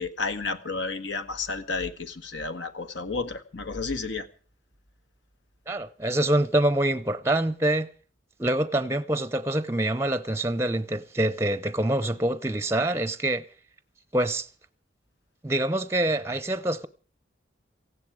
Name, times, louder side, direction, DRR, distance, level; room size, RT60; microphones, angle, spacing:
voice 1, 0.0-4.3, left 4 dB, 70° left, 1.6 m, -31 dB
voice 2, 5.7-7.9 8.4-13.4 14.1-14.5 15.4-16.9, right 1 dB, 15° right, 0.7 m, -25 dB
18.0 x 15.5 x 4.9 m
head